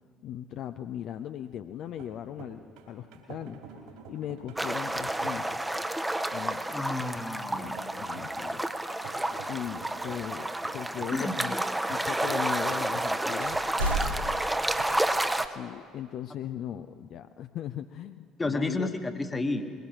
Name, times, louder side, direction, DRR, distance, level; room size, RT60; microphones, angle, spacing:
voice 1, 0.2-3.6 4.1-5.7 6.3-6.8 7.1-7.2 7.6-8.6 9.4-11.6 11.9-13.6 14.0-14.2 15.4-18.9, left 10 dB, 55° left, 9 dB, 0.4 m, -38 dB
sound 1, 1.8-14.8, right 5 dB, 65° right, 2.9 m, -48 dB
sound 2, 4.6-15.5, right 1 dB, 10° right, 0.7 m, -30 dB
voice 2, 6.7-7.8 11.1-11.4 18.4-19.6, left 2 dB, 20° left, 8 dB, 1.2 m, -31 dB
sound 3, 13.4-14.6, right 1 dB, 85° right, 0.8 m, -31 dB
22.0 x 21.0 x 3.0 m, 2.2 s
figure-of-eight pair, 55°, 0 cm